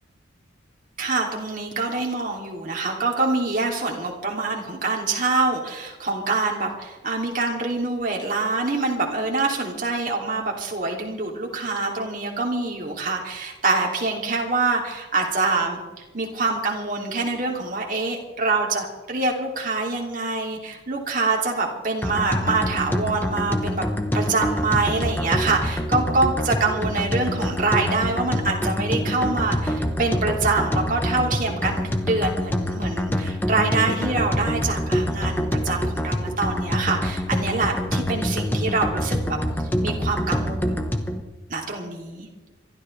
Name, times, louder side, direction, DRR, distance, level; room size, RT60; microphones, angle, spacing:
voice 1, 1.0-15.8 16.1-39.4 39.8-40.9 41.5-42.3, right 3 dB, 40° right, 0 dB, 2.7 m, -25 dB
sound 1, 22.0-41.2, equal, 10° left, 1.0 m, -26 dB
26.5 x 13.0 x 3.3 m, 1.2 s
head